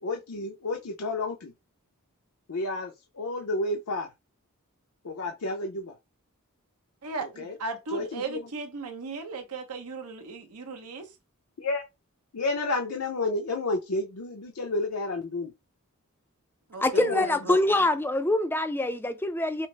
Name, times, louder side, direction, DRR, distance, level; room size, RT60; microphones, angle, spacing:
voice 1, 0.0-1.5 2.5-4.1 5.0-5.9 7.2-7.6 7.9-8.5 11.6-11.8 12.3-15.5 16.9-17.2, left 2 dB, 75° left, 0.6 m, -31 dB
voice 2, 7.0-11.1 16.7-17.6, right 4 dB, 90° right, 1.0 m, -36 dB
voice 3, 16.8-19.7, left 1 dB, 10° left, 0.4 m, -25 dB
5.5 x 2.0 x 3.3 m
head